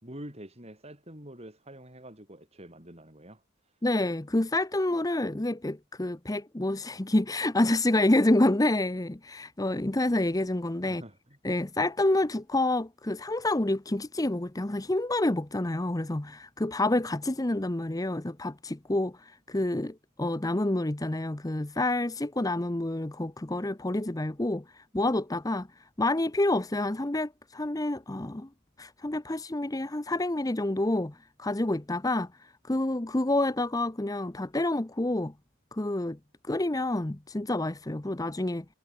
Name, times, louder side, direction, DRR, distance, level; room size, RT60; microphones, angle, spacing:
voice 1, 0.0-3.4 10.9-11.4, right 1 dB, 30° right, 6.1 m, -46 dB
voice 2, 3.8-11.0 11.4-25.7 26.0-28.5 28.8-35.3 35.7-36.2 36.4-38.6, left 1 dB, 15° left, 0.7 m, -28 dB
head